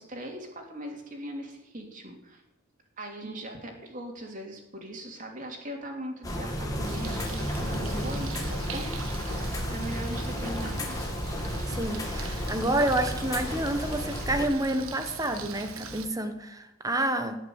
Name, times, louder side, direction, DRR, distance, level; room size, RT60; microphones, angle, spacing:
voice 1, 0.0-2.4 3.0-11.1, right 1 dB, 35° right, 2 dB, 3.0 m, -40 dB
sound 1, 6.2-14.5, equal, 15° left, 2.1 m, -32 dB
Bird, 6.8-16.0, right 4 dB, 90° right, 1.6 m, -42 dB
voice 2, 11.7-17.4, right 1 dB, 15° right, 7 dB, 1.3 m, -29 dB
18.5 x 6.6 x 9.6 m, 0.90 s
head